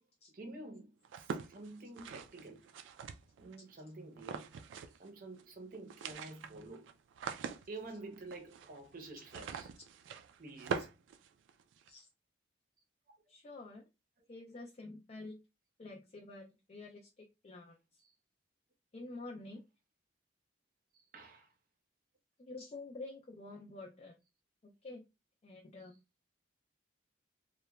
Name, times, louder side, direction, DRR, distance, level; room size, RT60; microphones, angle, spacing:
voice 1, 0.3-2.7 3.4-4.5 5.0-6.9 7.7-9.7 10.4-10.9 18.0-18.1 20.9-21.5, right 2 dB, 45° right, 0.6 m, -49 dB
sound 1, 1.1-3.6 4.2-5.1 5.3-5.4 5.7-11.9, right 5 dB, 80° right, 0.3 m, -44 dB
voice 2, 13.3-13.9 14.3-15.4 15.8-17.8 18.9-19.6 22.4-24.1 24.6-25.0 25.4-25.9, left 2 dB, 35° left, 0.3 m, -48 dB
2.9 x 2.1 x 2.2 m
head